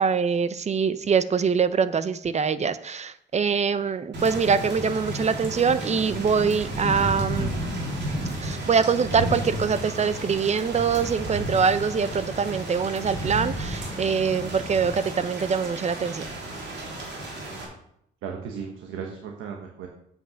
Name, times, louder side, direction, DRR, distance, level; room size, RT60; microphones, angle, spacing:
voice 1, 0.0-7.5 8.4-16.2, right 6 dB, 35° right, 14 dB, 0.6 m, -24 dB
Thunder / Rain, 4.1-17.6, right 1 dB, 60° right, 3.4 m, -32 dB
voice 2, 18.2-19.9, right 6 dB, 90° right, 2 dB, 1.3 m, -36 dB
8.1 x 5.9 x 6.4 m, 0.73 s
cardioid pair, 90°, 20 cm